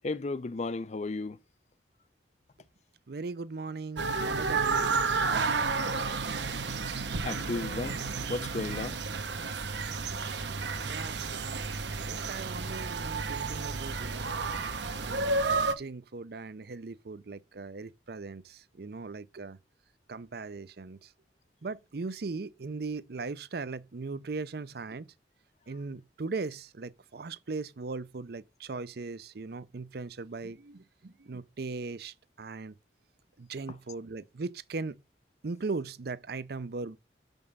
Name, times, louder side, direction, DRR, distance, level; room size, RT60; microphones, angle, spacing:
voice 1, 0.0-1.4 7.2-9.0, left 3 dB, 40° left, 0.5 m, -34 dB
voice 2, 3.1-5.0 10.5-11.6 11.9-14.3 14.9-19.6 20.1-21.1 21.6-25.1 25.7-32.7 33.4-35.0 35.4-37.0, right 3 dB, 60° right, 0.5 m, -39 dB
sound 1, 4.0-15.7, right 4 dB, 75° right, 1.0 m, -31 dB
6.9 x 5.3 x 5.4 m
head